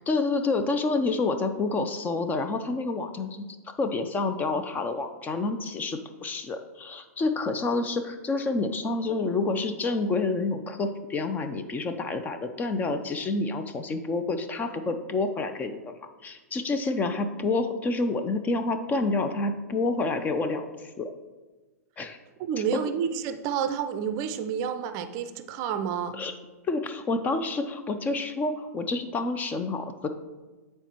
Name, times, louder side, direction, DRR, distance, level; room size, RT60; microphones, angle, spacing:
voice 1, 0.1-3.4 3.8-15.9 16.2-20.7 21.0-21.1 22.0-22.2 22.7-22.8 26.1-26.3 26.7-30.1, left 3 dB, 20° left, 8 dB, 0.5 m, -28 dB
voice 2, 22.4-26.2, right 7 dB, 40° right, 9 dB, 0.5 m, -29 dB
8.8 x 4.3 x 3.0 m, 1.3 s
hypercardioid pair, 115°, 9 cm